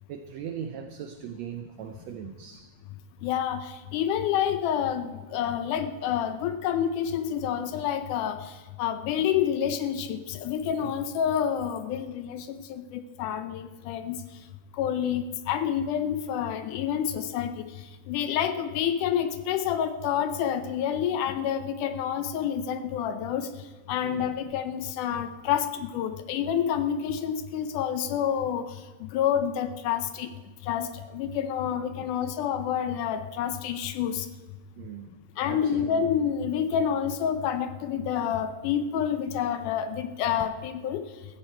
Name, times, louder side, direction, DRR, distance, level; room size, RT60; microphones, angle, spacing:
voice 1, 0.1-2.7 10.8-10.9 24.0-24.3 32.0-32.1 34.8-35.1 35.5-36.1, right 8 dB, 90° right, 6 dB, 1.5 m, -39 dB
voice 2, 3.2-8.5 8.8-14.2 14.8-17.6 18.1-23.5 23.9-28.7 29.0-30.3 30.6-30.9 31.1-34.3 35.4-41.0, left 9 dB, 75° left, 9 dB, 2.1 m, -28 dB
15.5 x 14.5 x 4.5 m, 1.3 s
omnidirectional pair, 3.9 m